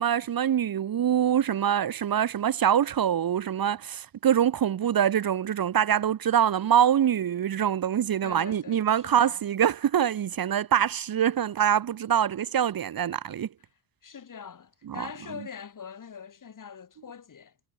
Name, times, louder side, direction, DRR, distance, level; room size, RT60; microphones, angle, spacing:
voice 1, 0.0-13.5 15.0-15.1, right 9 dB, 45° right, 1.9 m, -24 dB
voice 2, 8.2-9.4 14.0-17.5, left 7 dB, 40° left, 6.6 m, -43 dB
supercardioid pair, 80°, 48 cm